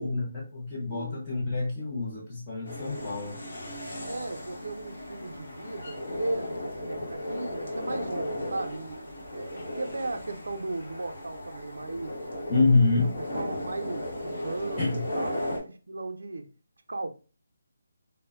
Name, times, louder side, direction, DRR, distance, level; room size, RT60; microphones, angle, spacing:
voice 1, 0.0-3.4 12.5-13.1 14.8-15.0, left 3 dB, 15° left, 0.4 m, -26 dB
voice 2, 0.9-1.2 4.0-6.5 6.9-12.2 12.9-14.0 14.4-14.9 15.1-16.5 16.9-17.1, right 2 dB, 85° right, 0.5 m, -36 dB
sound 1, 2.6-15.6, left 1 dB, 50° left, 0.9 m, -36 dB
2.1 x 2.0 x 3.4 m
hypercardioid pair, 180°, 0 cm